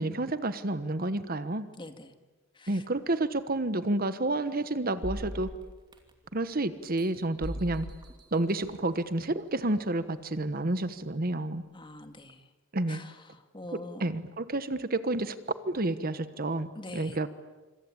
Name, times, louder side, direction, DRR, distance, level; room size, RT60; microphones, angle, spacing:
voice 1, 0.0-1.7 2.7-5.5 6.3-7.9 8.3-11.6 12.7-13.0 14.0-15.3 15.6-16.7 16.9-17.3, right 2 dB, 50° right, 12 dB, 1.2 m, -30 dB
voice 2, 1.8-2.1 2.6-2.8 11.7-12.4 12.9-13.1 13.5-14.1 16.8-17.2, left 2 dB, 25° left, 7 dB, 2.0 m, -43 dB
sound 1, 5.0-6.3 6.8-9.0 9.5-9.6, equal, 25° right, 2.9 m, -40 dB
26.0 x 26.0 x 8.7 m, 1.2 s
head